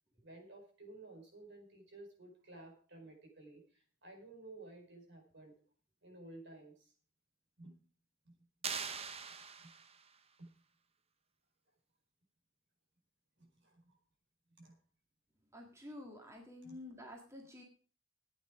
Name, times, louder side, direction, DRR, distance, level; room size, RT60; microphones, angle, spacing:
voice 1, 0.2-5.5 6.0-6.9 7.6-7.8 8.2-8.4 9.6-9.7 10.4-10.5 13.4-14.0 14.6-14.8 16.6-16.8, right 2 dB, 60° right, 3 dB, 4.7 m, -54 dB
sound 1, 8.6-10.2, right 6 dB, 30° right, 0.9 m, -42 dB
voice 2, 15.5-17.6, left 1 dB, 15° right, 1 dB, 1.9 m, -50 dB
14.0 x 9.3 x 5.0 m, 0.42 s
head